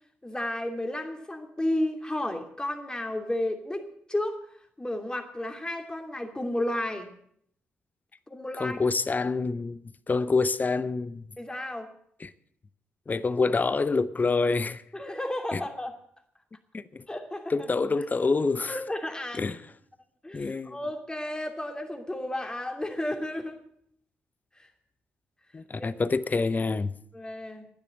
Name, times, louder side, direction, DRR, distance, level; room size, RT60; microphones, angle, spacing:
voice 1, 0.2-4.5 4.8-7.1 8.3-8.8 11.4-11.9 14.9-15.9 17.1-17.7 18.7-19.4 20.2-23.6 24.6-24.7 25.8-25.9 27.1-27.7, left 1 dB, 15° left, 2.8 m, -32 dB
voice 2, 8.6-9.8 10.1-11.2 12.2-12.3 13.1-14.8 15.5-15.6 16.7-17.0 17.5-18.8 19.3-19.6 20.3-20.8 25.5-26.9, left 4 dB, 35° left, 0.8 m, -26 dB
12.0 x 10.0 x 9.1 m
hypercardioid pair, 40°, 5 cm